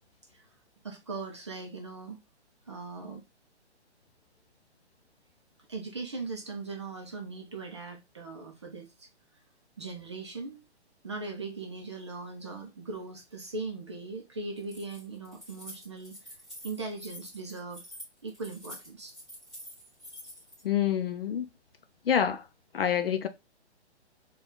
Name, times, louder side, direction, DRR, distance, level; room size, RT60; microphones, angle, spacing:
voice 1, 0.8-2.2 2.7-3.2 5.7-9.1 9.8-10.6 11.0-16.4 16.6-17.8 18.2-19.1, right 3 dB, 25° right, 0.5 m, -39 dB
Keys jangling, 14.6-20.6, left 1 dB, ahead, 1.4 m, -47 dB
voice 2, 20.6-21.5 22.1-22.4 22.7-23.3, left 9 dB, 55° left, 0.6 m, -27 dB
4.1 x 2.4 x 3.8 m
hypercardioid pair, 165°, 34 cm